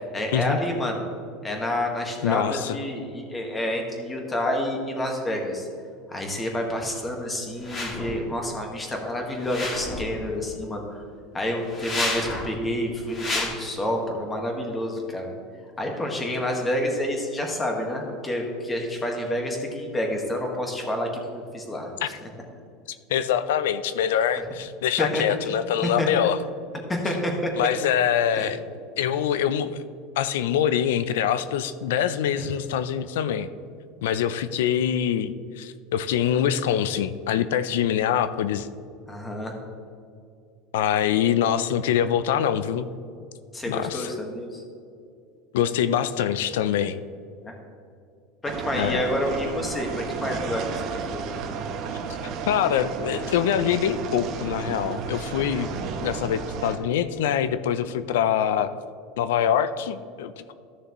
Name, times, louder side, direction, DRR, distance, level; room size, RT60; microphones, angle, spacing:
voice 1, 0.1-1.0 1.4-5.7 6.1-11.0 11.3-15.3 15.8-21.9 25.0-26.1 26.9-27.7 28.4-28.5 32.4-32.5 39.1-39.5 43.5-44.6 47.4-47.5 48.4-51.2, left 1 dB, 15° left, 1 dB, 1.5 m, -29 dB
voice 2, 2.2-2.8 22.0-22.1 23.1-26.4 27.6-28.6 29.0-29.8 30.2-33.5 34.0-38.7 40.7-42.9 43.7-44.1 45.5-47.0 48.8-49.0 52.5-55.7 56.0-58.7 59.2-60.5, left 9 dB, 90° left, 13 dB, 0.4 m, -24 dB
sound 1, 7.6-8.1 9.3-10.1 11.6-12.5 13.1-13.5, left 2 dB, 30° left, 2.3 m, -30 dB
sound 2, 48.4-56.8, right 5 dB, 50° right, 1.0 m, -32 dB
13.5 x 6.6 x 3.0 m, 2.4 s
supercardioid pair, 135°, 0 cm